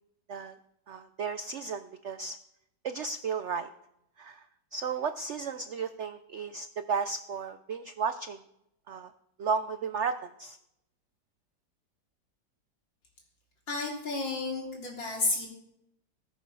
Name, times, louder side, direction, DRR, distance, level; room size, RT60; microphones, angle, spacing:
voice 1, 0.9-2.4 2.8-3.7 4.2-4.4 4.7-8.4 8.9-9.1 9.4-10.6, right 5 dB, 80° right, 11 dB, 0.6 m, -34 dB
voice 2, 13.7-15.5, left 3 dB, 90° left, -1 dB, 3.8 m, -31 dB
19.5 x 7.2 x 5.5 m, 0.82 s
omnidirectional pair, 2.0 m